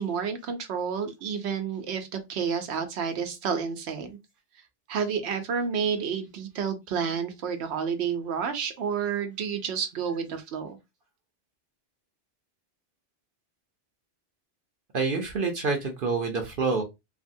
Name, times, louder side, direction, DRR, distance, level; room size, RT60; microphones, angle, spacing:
voice 1, 0.0-4.1 4.9-10.8, right 6 dB, 90° right, 0.9 m, -30 dB
voice 2, 14.9-16.8, right 4 dB, 60° right, 0.7 m, -27 dB
3.3 x 2.2 x 2.6 m
omnidirectional pair, 1.1 m